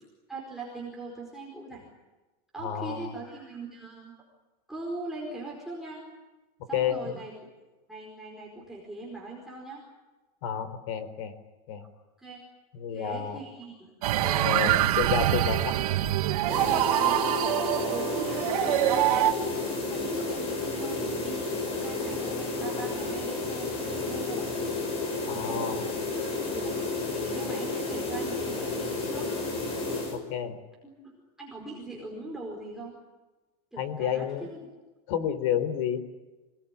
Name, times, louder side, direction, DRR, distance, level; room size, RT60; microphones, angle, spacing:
voice 1, 0.3-1.8 2.5-4.2 4.7-6.0 6.7-7.3 7.9-9.8 12.2-12.4 12.9-13.9 14.2-15.5 16.7-17.2 17.8-19.5 19.9-24.5 25.3-26.7 27.2-29.3 30.8-32.9 33.7-34.6, right 2 dB, ahead, -4 dB, 4.7 m, -41 dB
voice 2, 2.6-3.1 6.7-7.2 10.4-11.3 11.7-11.8 12.7-13.4 14.4-15.7 25.3-25.8 30.1-30.6 33.8-34.5 35.1-36.0, left 9 dB, 55° left, 12 dB, 4.2 m, -30 dB
sound 1, 14.0-19.3, right 13 dB, 75° right, 2.0 m, -25 dB
sound 2, 16.5-30.2, left 3 dB, 30° left, 6.0 m, -31 dB
26.0 x 20.0 x 10.0 m, 1.2 s
supercardioid pair, 180°, 19 cm